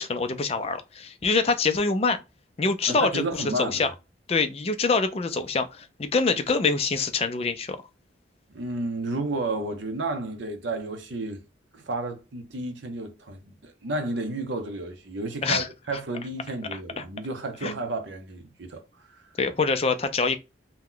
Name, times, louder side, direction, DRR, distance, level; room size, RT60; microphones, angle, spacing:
voice 1, 0.0-2.2 2.6-3.9 4.3-7.8 15.4-15.7 17.0-17.1 17.6-17.8 19.4-20.4, left 4 dB, 30° left, 0.4 m, -25 dB
voice 2, 2.9-3.9 8.5-11.4 11.7-19.2, right 2 dB, 75° right, 0.7 m, -32 dB
2.9 x 2.2 x 3.7 m
head